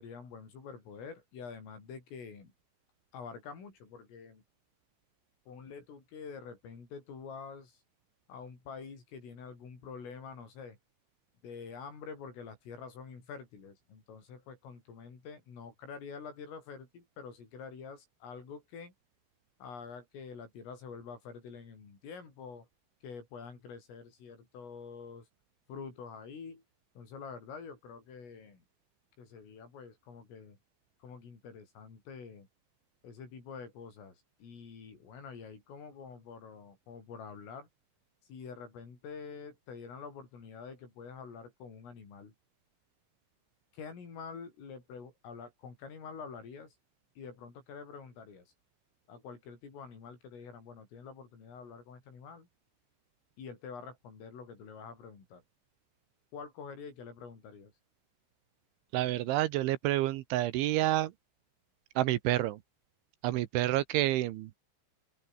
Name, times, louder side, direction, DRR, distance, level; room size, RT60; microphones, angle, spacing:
voice 1, 0.0-2.5 3.1-4.4 5.5-7.8 8.3-10.8 11.4-18.9 19.6-22.7 23.0-25.3 25.7-26.6 27.0-28.7 29.2-30.6 31.0-32.5 33.0-37.7 38.3-42.3 43.7-46.8 47.2-48.5 49.1-52.5 53.4-55.4 56.3-57.7, left 5 dB, 75° left, 9.4 m, -47 dB
voice 2, 58.9-61.1 62.0-62.6 63.2-64.5, right 15 dB, 75° right, 3.2 m, -29 dB
open air
omnidirectional pair, 5.9 m